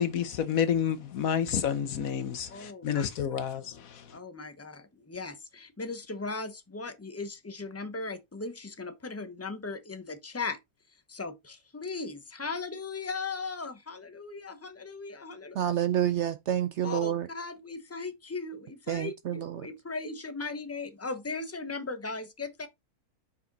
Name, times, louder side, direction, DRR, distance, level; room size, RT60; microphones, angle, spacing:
voice 1, 0.0-4.0, left 8 dB, 70° left, 1.3 m, -29 dB
voice 2, 2.5-3.1 4.1-10.6 11.1-15.8 16.8-22.7, left 3 dB, 15° left, 0.7 m, -38 dB
voice 3, 15.6-17.3 18.9-19.7, right 10 dB, 65° right, 0.7 m, -28 dB
5.7 x 4.9 x 4.0 m
omnidirectional pair, 1.5 m